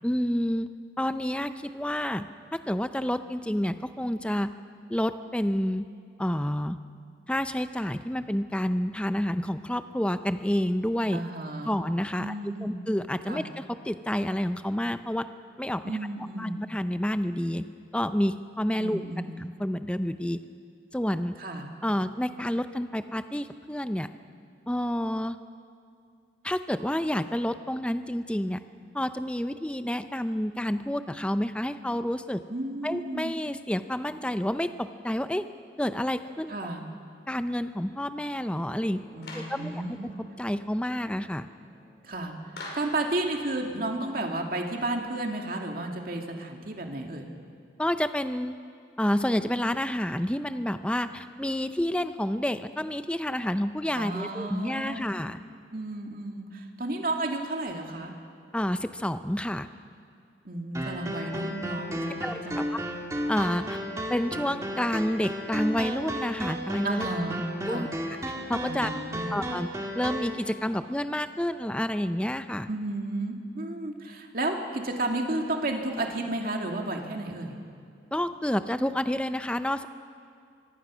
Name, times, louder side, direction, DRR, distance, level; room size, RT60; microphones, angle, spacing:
voice 1, 0.0-0.7 1.0-2.3 2.5-4.5 4.9-5.8 6.2-6.8 7.3-11.2 11.6-12.3 12.6-15.3 15.6-16.0 16.4-17.6 17.9-19.0 19.4-20.4 20.9-21.3 21.8-24.1 24.7-25.4 26.4-28.6 28.9-32.4 32.8-35.4 35.8-36.6 37.3-39.0 39.3-39.8 40.4-41.5 47.8-48.6 49.0-55.4 58.5-59.7 61.3-61.5 62.2-62.8 63.3-63.8 64.1-67.1 67.7-67.9 68.5-68.9 69.3-69.7 69.9-72.7 78.1-79.9, left 1 dB, 5° left, 10 dB, 0.5 m, -29 dB
voice 2, 11.1-11.8 12.2-12.8 13.3-13.5 15.8-16.6 18.8-19.4 21.4-21.7 32.5-33.3 36.5-36.8 39.1-40.1 42.0-42.3 42.7-47.3 53.9-55.1 55.7-58.1 60.4-62.6 66.8-67.9 68.7-69.3 72.7-77.6, right 2 dB, 50° right, 2 dB, 2.3 m, -32 dB
sound 1, 38.6-45.7 46.5-46.6, left 1 dB, 25° left, 4.6 m, -55 dB
Clapping, 39.2-39.6 42.6-43.0, left 2 dB, 70° left, 6.2 m, -40 dB
sound 2, 60.7-70.3, equal, 15° right, 1.9 m, -34 dB
24.5 x 23.5 x 6.2 m, 2.3 s
head